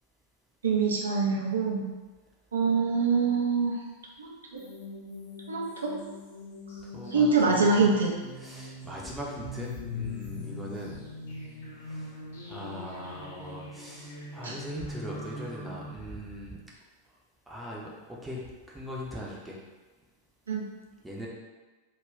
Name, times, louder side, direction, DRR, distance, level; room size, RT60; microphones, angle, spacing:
voice 1, 0.6-1.9 2.5-3.8 4.2-4.6 5.5-5.9 7.1-8.1 14.4-14.6 20.5-20.7, right 4 dB, 70° right, -2 dB, 0.4 m, -25 dB
sound 1, 4.6-15.9, left 2 dB, 60° left, 0.7 m, -41 dB
voice 2, 6.9-7.8 8.4-11.0 11.9-12.2 12.5-16.6 17.5-19.6 21.0-21.3, equal, 5° right, -4 dB, 0.6 m, -40 dB
2.2 x 2.2 x 3.5 m, 1.2 s
figure-of-eight pair, 90°, 0 cm